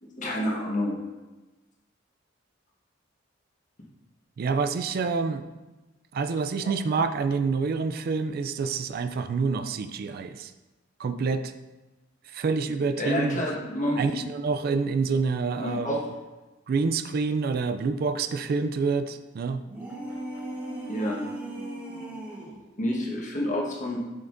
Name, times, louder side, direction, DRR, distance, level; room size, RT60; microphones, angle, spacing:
voice 1, 0.0-1.0 13.0-14.2 15.6-16.0 20.9-21.2 22.8-24.0, left 1 dB, 40° left, -3 dB, 1.3 m, -29 dB
voice 2, 4.4-5.5 6.1-10.5 11.0-11.5 12.3-13.4 14.0-16.0 16.7-19.6, right 4 dB, 50° right, 9 dB, 0.3 m, -27 dB
sound 1, 19.7-22.6, right 1 dB, 10° right, 1.2 m, -37 dB
7.5 x 5.8 x 2.6 m, 1.1 s
head